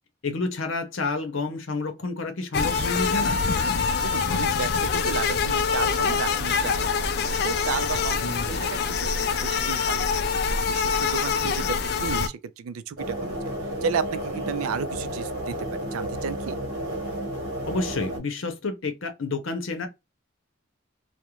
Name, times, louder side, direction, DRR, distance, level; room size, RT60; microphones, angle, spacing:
voice 1, 0.2-3.4 8.2-8.6 11.6-11.7 17.6-19.9, left 3 dB, 65° left, 0.7 m, -29 dB
sound 1, 2.5-12.3, left 5 dB, 50° left, 0.3 m, -25 dB
sound 2, 2.6-8.9, right 1 dB, 25° right, 0.7 m, -43 dB
voice 2, 4.0-10.1 10.7-13.4 13.8-16.6, right 6 dB, 85° right, 0.3 m, -33 dB
sound 3, 13.0-18.2, right 1 dB, 55° right, 0.9 m, -32 dB
2.4 x 2.1 x 2.9 m
head